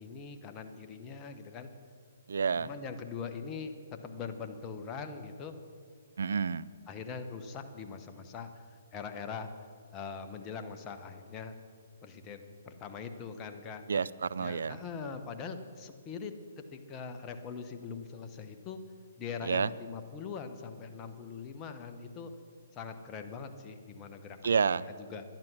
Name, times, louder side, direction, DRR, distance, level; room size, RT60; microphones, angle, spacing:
voice 1, 0.0-1.7 2.6-5.6 6.9-8.7 8.9-9.5 9.9-11.5 12.0-14.0 14.4-16.3 16.7-18.8 19.2-22.3 22.8-24.6 25.0-25.2, left 5 dB, 25° left, 6 dB, 1.0 m, -42 dB
voice 2, 2.3-2.7 6.2-6.6 13.9-14.8 19.4-19.7 24.4-24.9, right 6 dB, 70° right, 17 dB, 0.4 m, -29 dB
11.0 x 10.5 x 6.1 m, 2.2 s
figure-of-eight pair, 130°, 0 cm